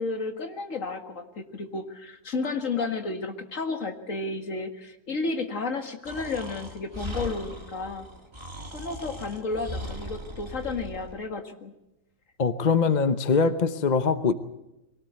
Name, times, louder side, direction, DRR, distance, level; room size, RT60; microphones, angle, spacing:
voice 1, 0.0-8.1 8.7-11.7, left 3 dB, 60° left, 6 dB, 2.2 m, -32 dB
Breathing, 6.0-11.2, equal, 20° right, 2.4 m, -39 dB
voice 2, 12.4-14.3, left 5 dB, 35° left, 11 dB, 0.8 m, -22 dB
23.5 x 18.0 x 8.0 m, 0.93 s
omnidirectional pair, 1.6 m